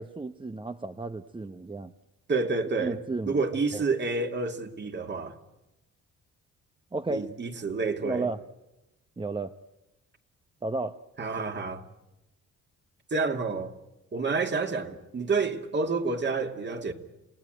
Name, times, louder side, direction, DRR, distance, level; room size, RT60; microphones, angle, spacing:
voice 1, 0.0-1.9 2.8-3.4 3.7-3.9 6.9-7.3 8.0-8.4 9.2-9.5 10.6-11.0, right 3 dB, 15° right, 0.8 m, -33 dB
voice 2, 2.3-3.0 3.3-5.4 7.1-8.3 11.2-11.8 13.1-13.7 14.1-16.9, right 4 dB, 35° right, 2.5 m, -29 dB
28.5 x 17.5 x 9.2 m
cardioid pair, 90°, 30 cm